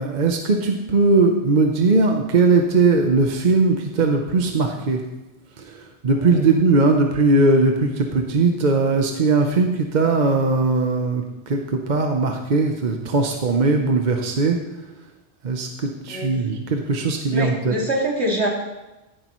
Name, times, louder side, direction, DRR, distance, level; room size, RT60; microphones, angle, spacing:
voice 1, 0.0-5.0 5.6-14.6 15.4-17.7, right 3 dB, 45° right, 3 dB, 0.9 m, -19 dB
voice 2, 17.3-18.5, right 1 dB, 75° right, -2 dB, 2.7 m, -24 dB
15.5 x 9.6 x 3.1 m, 1.0 s
omnidirectional pair, 1.1 m